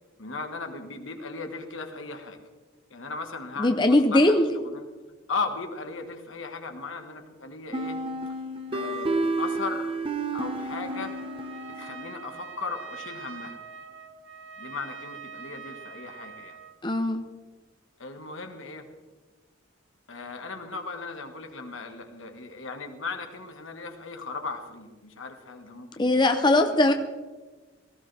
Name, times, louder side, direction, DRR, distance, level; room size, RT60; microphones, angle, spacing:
voice 1, 0.2-2.4 2.9-4.9 5.3-8.0 8.7-9.9 10.3-11.2 11.7-13.6 14.6-16.6 18.0-18.9 20.1-26.9, left 4 dB, 75° left, 5 dB, 1.7 m, -37 dB
voice 2, 3.6-4.5 16.8-17.2 26.0-26.9, left 2 dB, 20° left, 6 dB, 0.6 m, -20 dB
sound 1, 7.7-12.4, right 2 dB, 25° right, 1.1 m, -31 dB
Trumpet, 10.9-16.8, right 6 dB, 70° right, 1.2 m, -43 dB
18.5 x 15.0 x 3.5 m, 1.3 s
head